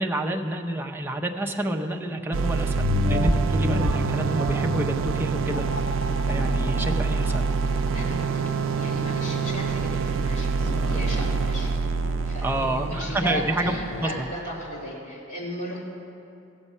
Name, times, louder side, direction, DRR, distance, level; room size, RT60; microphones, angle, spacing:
voice 1, 0.0-5.7 6.3-7.5 12.4-14.3, right 1 dB, 10° right, 1 dB, 0.6 m, -29 dB
sound 1, 2.3-14.2, right 5 dB, 85° right, 0.3 m, -26 dB
sound 2, 2.7-7.7 8.2-8.3, left 2 dB, 40° right, 1.3 m, -29 dB
sound 3, 5.5-14.4, left 2 dB, 80° left, 0.6 m, -37 dB
voice 2, 7.7-11.7 12.2-15.8, equal, 40° left, -6 dB, 2.8 m, -35 dB
15.0 x 7.1 x 5.5 m, 2.6 s
head